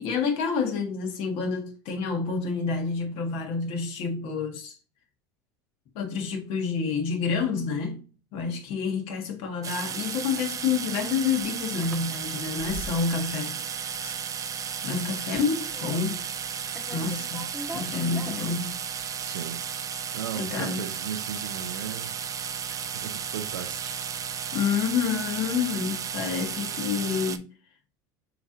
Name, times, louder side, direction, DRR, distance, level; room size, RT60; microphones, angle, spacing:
voice 1, 0.0-4.7 5.9-8.0 8.3-13.6 14.0-14.1 14.8-16.2 16.9-18.7 19.3-19.4 20.4-20.9 24.5-27.4, left 5 dB, 60° left, 1.5 m, -28 dB
sound 1, 9.6-27.4, right 7 dB, 30° right, 0.6 m, -34 dB
sound 2, 11.3-13.3 13.6-14.1 14.5-14.8 15.1-16.5 16.7-19.0, right 1 dB, ahead, 1.2 m, -43 dB
voice 2, 19.2-19.6 20.1-22.2 22.7-24.1, right 9 dB, 85° right, 0.7 m, -37 dB
6.8 x 3.0 x 2.6 m
hypercardioid pair, 90°, 11 cm